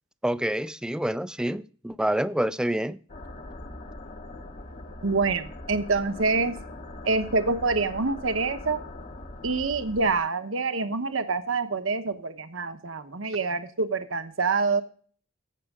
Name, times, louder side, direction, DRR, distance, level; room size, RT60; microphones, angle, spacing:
voice 1, 0.2-3.0, right 1 dB, 5° right, 0.4 m, -27 dB
sound 1, 3.1-10.2, left 2 dB, 40° left, 1.3 m, -41 dB
voice 2, 5.0-6.5 7.0-8.8 9.4-14.8, right 4 dB, 75° right, 1.1 m, -26 dB
16.0 x 6.4 x 3.6 m
head